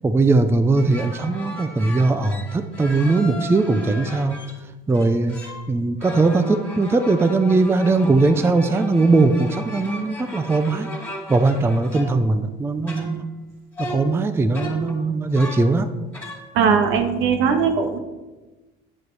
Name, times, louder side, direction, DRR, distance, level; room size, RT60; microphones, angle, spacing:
voice 1, 0.0-4.4 4.9-5.4 5.7-10.9 11.3-13.3 13.8-15.9, right 3 dB, 10° right, 9 dB, 0.5 m, -19 dB
sound 1, 0.8-4.6 4.9-5.7 6.0-12.5 12.9-13.5 13.7-15.8 16.1-16.5, equal, 10° left, 2.7 m, -36 dB
voice 2, 16.5-18.0, right 6 dB, 70° right, 6 dB, 1.6 m, -19 dB
9.5 x 7.6 x 4.7 m, 1.1 s
cardioid pair, 135°, 21 cm